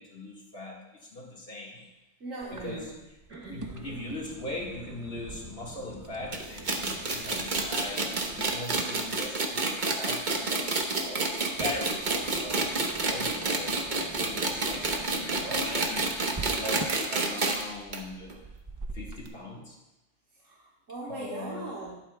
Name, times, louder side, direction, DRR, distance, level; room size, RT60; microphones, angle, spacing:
voice 1, 0.0-1.8 2.6-2.8 3.5-8.3 8.5-11.3 11.6-18.3 18.9-19.8 21.1-21.6, left 2 dB, 50° left, -3 dB, 2.0 m, -40 dB
voice 2, 2.2-3.0 3.3-4.1 20.3-22.0, right 2 dB, 75° right, -5 dB, 1.9 m, -41 dB
sound 1, 2.4-19.3, right 3 dB, 25° right, 0.4 m, -45 dB
sound 2, 6.3-17.6 17.9-18.0 18.3-18.4 19.3-19.4, right 3 dB, 40° right, 1.1 m, -29 dB
21.0 x 7.6 x 2.3 m, 0.98 s
omnidirectional pair, 1.3 m